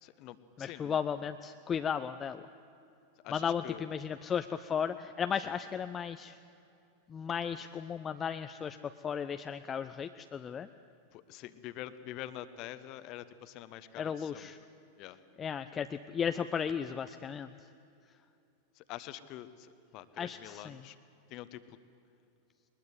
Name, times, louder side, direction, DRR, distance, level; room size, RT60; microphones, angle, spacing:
voice 1, 0.0-1.0 3.2-3.8 5.4-5.5 11.1-14.5 15.0-15.2 18.7-21.0 21.3-21.8, left 13 dB, 40° left, 13 dB, 1.1 m, -46 dB
voice 2, 0.6-2.5 3.3-6.4 7.1-10.7 14.0-14.6 15.4-17.5 20.2-20.8, left 7 dB, 20° left, 9 dB, 0.5 m, -35 dB
21.5 x 20.5 x 8.3 m, 2.6 s
figure-of-eight pair, 90°, 0 cm